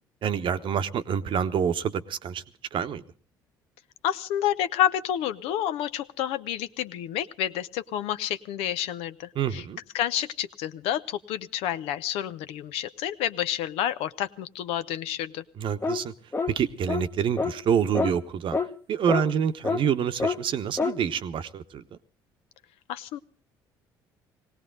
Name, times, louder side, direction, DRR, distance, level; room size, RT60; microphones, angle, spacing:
voice 1, 0.2-2.4 2.7-3.0 9.3-9.8 15.6-16.1 16.5-18.6 18.9-22.0, right 8 dB, 50° right, 11 dB, 0.9 m, -27 dB
voice 2, 4.0-9.6 9.9-15.4 22.9-23.2, left 11 dB, 65° left, 13 dB, 0.7 m, -29 dB
sound 1, 15.8-16.0 16.3-16.5 16.9-17.1 17.4-17.5 17.9-18.1 18.5-18.7 19.1-19.2 19.6-19.8 20.2-20.4 20.8-21.0, left 4 dB, 20° left, 1.1 m, -26 dB
20.0 x 18.0 x 3.8 m, 0.41 s
figure-of-eight pair, 55°, 11 cm